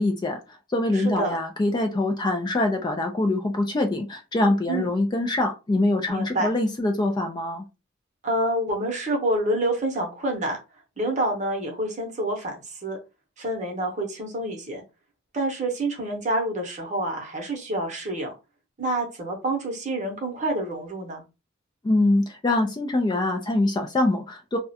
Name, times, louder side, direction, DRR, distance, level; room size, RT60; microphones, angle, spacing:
voice 1, 0.0-7.7 21.8-24.6, left 2 dB, 20° left, 4 dB, 0.3 m, -24 dB
voice 2, 0.9-1.4 4.7-4.9 6.1-6.5 8.2-10.6 11.0-13.0 13.4-14.8 15.3-18.3 18.8-21.2, right 1 dB, 35° right, 2 dB, 0.8 m, -27 dB
2.3 x 2.1 x 2.7 m, 0.28 s
head